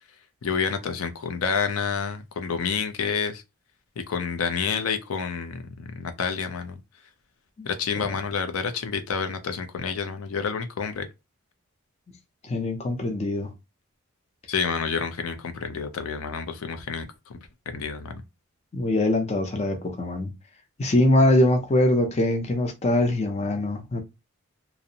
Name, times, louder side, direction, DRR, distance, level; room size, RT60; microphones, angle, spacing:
voice 1, 0.4-3.4 4.1-6.8 7.7-11.1 14.5-17.4 17.7-18.2, left 6 dB, 85° left, 0.4 m, -29 dB
voice 2, 12.4-13.5 18.7-20.3 20.8-24.0, left 1 dB, 30° left, 0.5 m, -23 dB
2.5 x 2.0 x 2.7 m
head